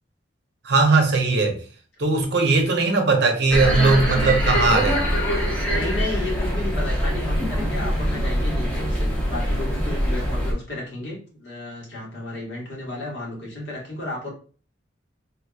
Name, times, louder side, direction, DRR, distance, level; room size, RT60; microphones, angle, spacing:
voice 1, 0.6-1.6 2.0-5.0, right 3 dB, 60° right, 0.8 m, -19 dB
sound 1, 3.5-10.5, equal, 10° left, 0.8 m, -23 dB
voice 2, 5.7-14.3, left 2 dB, 60° left, 1.6 m, -33 dB
3.4 x 3.0 x 2.3 m
head